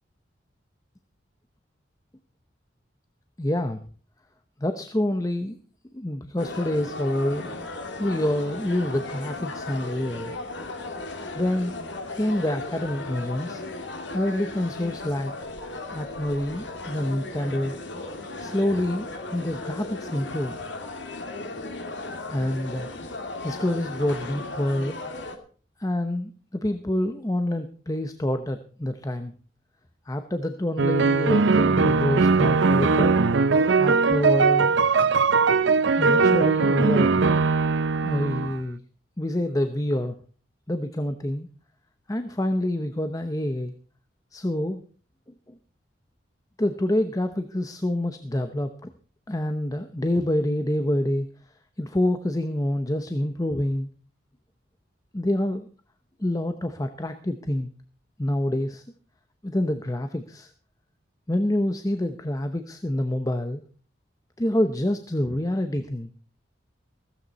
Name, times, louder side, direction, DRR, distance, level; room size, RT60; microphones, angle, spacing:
voice 1, 3.4-3.8 4.6-5.6 5.9-7.5 8.0-10.3 11.3-11.7 12.1-13.6 14.1-15.3 15.9-17.7 18.4-20.5 22.3-22.9 23.1-25.0 25.8-29.3 30.1-33.2 33.8-34.7 35.9-37.3 38.0-38.8 39.2-40.2 40.7-41.5 42.1-43.7 44.3-44.8 45.5-45.6 46.6-48.9 49.3-51.3 51.8-53.9 55.1-55.7 56.2-57.7 58.2-58.8 59.4-60.5 61.3-63.6 64.4-66.1, left 1 dB, 20° left, 8 dB, 0.8 m, -27 dB
sound 1, 6.4-25.4, left 2 dB, 70° left, 2.4 m, -36 dB
sound 2, 30.8-38.6, right 4 dB, 70° right, 0.6 m, -20 dB
15.5 x 14.0 x 4.1 m, 0.41 s
head